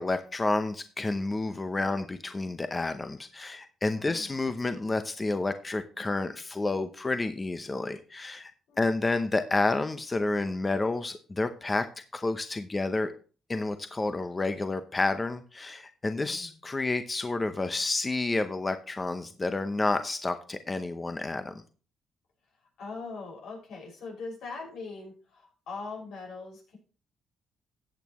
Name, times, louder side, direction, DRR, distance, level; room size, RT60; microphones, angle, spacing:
voice 1, 0.0-8.5 8.8-13.1 13.5-21.5, left 2 dB, 25° left, 9 dB, 0.7 m, -30 dB
voice 2, 3.9-4.3 8.7-8.8 16.2-16.6 22.8-26.8, left 3 dB, 80° left, 0 dB, 5.7 m, -41 dB
14.5 x 8.3 x 3.0 m, 0.38 s
cardioid pair, 90°, 0 cm